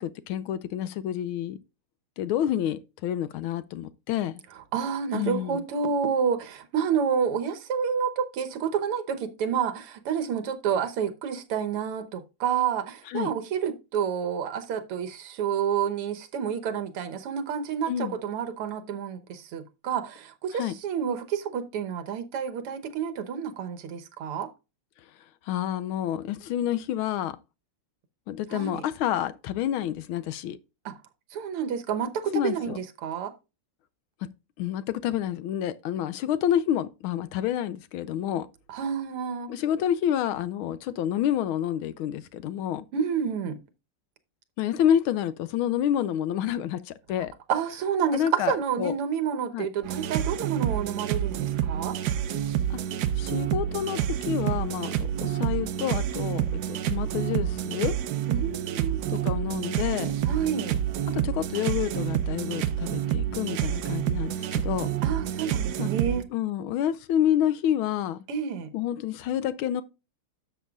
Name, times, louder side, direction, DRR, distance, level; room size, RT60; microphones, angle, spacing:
voice 1, 0.0-1.6 2.2-4.4 5.1-5.6 13.1-13.3 17.9-18.2 20.5-20.7 25.5-27.4 28.3-30.6 32.3-32.8 34.6-38.5 39.5-42.9 44.6-47.3 48.1-48.9 49.5-49.7 52.7-52.8 53.2-57.9 59.1-60.1 61.1-64.9 65.8-65.9 66.3-68.2 68.7-69.8, left 10 dB, 80° left, 1.4 m, -28 dB
voice 2, 4.7-24.5 28.5-28.8 30.9-31.0 31.3-33.3 38.7-39.5 42.9-43.6 47.5-52.0 58.3-59.0 60.3-60.8 65.0-66.3 68.3-68.7, right 7 dB, 85° right, 2.0 m, -29 dB
sound 1, 49.8-66.2, right 10 dB, 65° right, 1.0 m, -28 dB
12.0 x 7.1 x 2.3 m
omnidirectional pair, 2.4 m